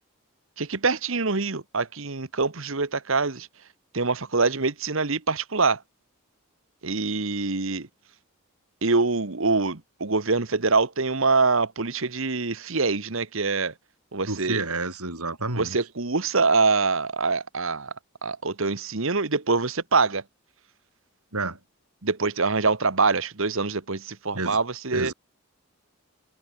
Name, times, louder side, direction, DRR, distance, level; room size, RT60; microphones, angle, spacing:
voice 1, 0.6-3.5 3.9-5.8 6.8-7.9 8.8-13.7 14.1-14.6 15.5-17.9 18.2-20.2 22.0-25.1, right 4 dB, 60° right, 1.4 m, -24 dB
voice 2, 14.3-15.8 21.3-21.6 24.3-24.6 24.9-25.1, right 2 dB, 90° right, 7.1 m, -30 dB
head